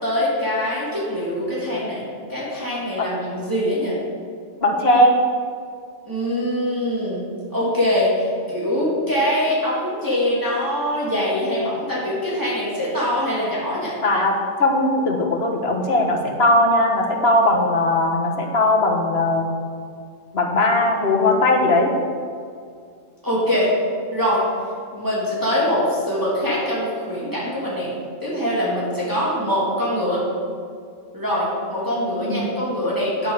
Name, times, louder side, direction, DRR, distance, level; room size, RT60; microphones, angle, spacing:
voice 1, 0.0-3.9 6.1-7.2 7.5-14.0 23.2-23.7 24.1-24.4 24.9-27.9 28.2-30.2 31.1-33.3, equal, 15° right, -8 dB, 3.2 m, -23 dB
voice 2, 4.6-5.1 14.0-19.5 20.3-21.9 32.2-32.4, left 1 dB, 50° left, 1 dB, 1.7 m, -19 dB
9.6 x 9.1 x 6.7 m, 2.2 s
omnidirectional pair, 1.4 m